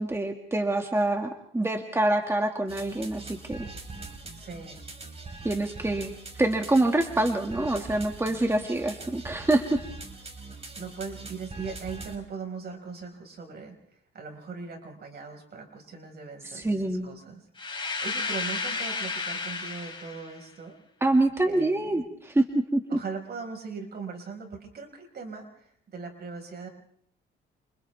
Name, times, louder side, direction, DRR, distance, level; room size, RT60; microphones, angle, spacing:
voice 1, 0.0-3.7 5.4-6.1 6.4-9.8 16.4-17.1 21.0-22.8, right 2 dB, 15° right, 4 dB, 2.2 m, -26 dB
sound 1, 2.7-12.2, right 3 dB, 30° right, 4.3 m, -42 dB
voice 2, 4.4-4.8 10.8-13.8 14.1-20.8 21.4-22.0 22.9-26.7, right 5 dB, 55° right, 3 dB, 5.4 m, -40 dB
sound 2, 17.6-20.3, left 4 dB, 25° left, 4.7 m, -32 dB
30.0 x 28.0 x 3.5 m, 0.68 s
cardioid pair, 90°, 20 cm